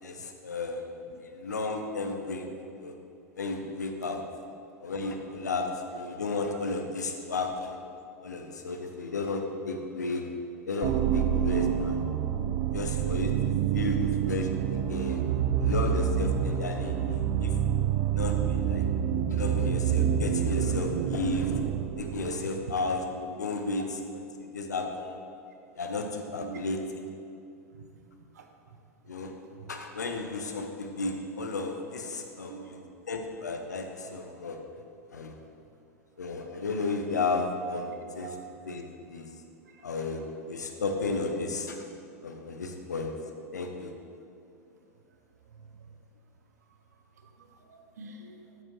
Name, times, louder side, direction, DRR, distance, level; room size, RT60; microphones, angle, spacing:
voice 1, 0.0-0.9 1.2-2.5 2.8-2.9 3.4-4.2 4.8-7.8 8.2-10.3 10.7-12.0 12.7-15.2 15.6-17.6 18.1-18.9 19.3-21.6 22.0-25.2 25.7-26.8 29.1-29.3 29.7-32.8 33.1-34.6 35.1-35.3 36.2-38.3 38.7-39.3 39.8-41.8 42.2-43.1 43.5-43.9, left 3 dB, 80° left, 4 dB, 0.8 m, -33 dB
sound 1, 10.8-22.7, right 9 dB, 45° right, 0.4 m, -27 dB
voice 2, 26.3-26.6 27.7-28.1 28.3-28.5 29.5-29.7 32.5-33.0 34.0-34.2 35.4-35.5 38.2-38.4 39.7-39.8 45.5-46.0 47.2-48.5, right 6 dB, 70° right, 5 dB, 0.8 m, -47 dB
8.7 x 8.1 x 3.1 m, 2.5 s
figure-of-eight pair, 90°, 9 cm